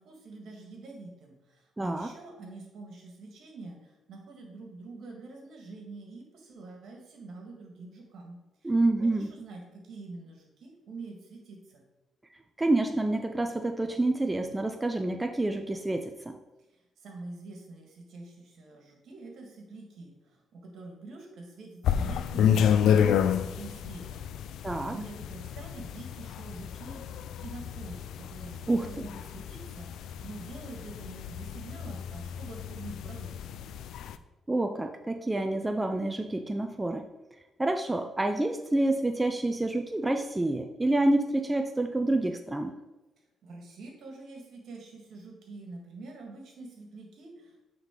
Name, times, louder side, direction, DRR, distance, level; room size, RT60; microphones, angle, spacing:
voice 1, 0.0-8.7 9.0-11.8 17.0-27.0 27.4-33.3 43.4-47.7, right 3 dB, 70° right, 1 dB, 1.8 m, -45 dB
voice 2, 1.8-2.1 8.6-9.3 12.6-16.4 24.6-25.0 28.7-29.0 34.5-37.0 37.6-42.7, right 2 dB, 15° right, 6 dB, 0.4 m, -28 dB
sound 1, 21.8-34.2, left 8 dB, 80° left, 0.3 m, -30 dB
9.0 x 3.8 x 3.8 m, 1.1 s
cardioid pair, 90°, 0 cm